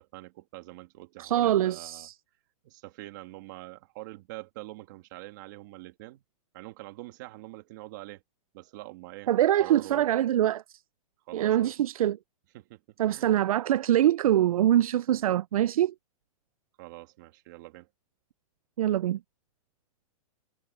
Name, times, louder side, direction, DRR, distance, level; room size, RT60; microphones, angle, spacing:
voice 1, 0.0-2.1 2.6-6.2 6.5-8.2 8.5-9.3 9.6-10.2 11.2-11.7 12.5-13.4 16.8-17.9, right 19 dB, 30° right, 2.4 m, -45 dB
voice 2, 1.2-2.1 9.3-10.6 11.3-12.2 13.0-15.9 18.8-19.2, right 12 dB, 70° right, 0.4 m, -24 dB
hypercardioid pair, 180°, 19 cm